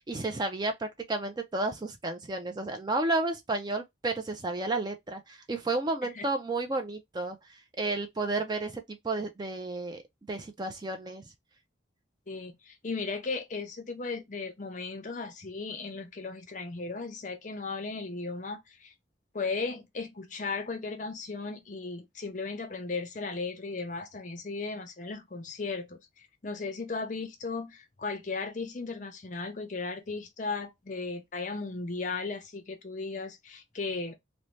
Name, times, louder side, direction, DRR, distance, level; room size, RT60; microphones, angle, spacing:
voice 1, 0.0-7.4 7.8-10.0 10.3-11.2, right 2 dB, 20° right, 0.3 m, -32 dB
voice 2, 12.3-18.9 19.3-26.0 26.4-34.1, left 4 dB, 40° left, 0.6 m, -36 dB
2.6 x 2.1 x 3.1 m
head